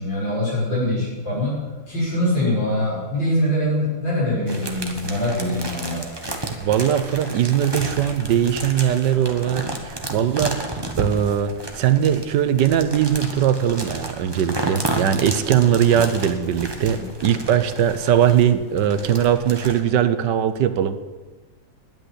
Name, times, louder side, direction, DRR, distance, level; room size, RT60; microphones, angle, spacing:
voice 1, 0.0-6.0 16.9-17.1, left 1 dB, 90° left, -7 dB, 6.4 m, -23 dB
sound 1, 4.5-19.8, right 2 dB, 15° right, 1.2 m, -32 dB
voice 2, 6.6-10.6 11.0-21.0, right 9 dB, 75° right, 11 dB, 1.4 m, -20 dB
10.5 x 9.2 x 9.9 m, 1.3 s
omnidirectional pair, 1.9 m